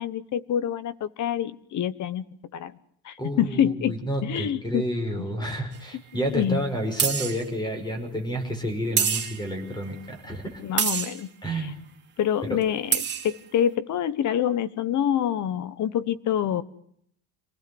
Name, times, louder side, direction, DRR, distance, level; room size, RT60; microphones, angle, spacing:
voice 1, 0.0-2.3 2.5-2.8 3.0-4.8 5.2-5.3 6.1-6.6 10.6-11.7 12.2-16.6, left 10 dB, 40° left, 15 dB, 1.2 m, -26 dB
voice 2, 3.2-10.6 11.4-11.7 12.5-12.6, right 1 dB, 10° left, 6 dB, 5.7 m, -30 dB
sound 1, 5.7-5.8 7.0-7.4 9.0-9.6 10.8-11.2 12.6-12.7 12.9-13.4, right 7 dB, 25° right, 2.9 m, -26 dB
27.5 x 19.0 x 7.1 m, 0.69 s
cardioid pair, 170°, 46 cm